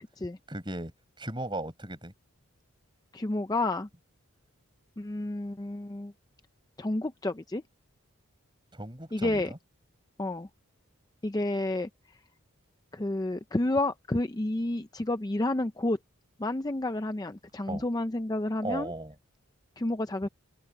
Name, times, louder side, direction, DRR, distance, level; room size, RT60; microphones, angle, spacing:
voice 1, 0.5-0.9 1.2-2.1 8.7-9.6 17.7-17.8 18.6-19.1, right 1 dB, 20° right, 5.0 m, -36 dB
voice 2, 3.1-3.9 5.0-6.1 6.8-7.6 9.1-9.5 10.2-10.5 11.2-11.9 12.9-16.0 16.4-18.9 19.8-20.3, left 2 dB, 15° left, 0.5 m, -30 dB
head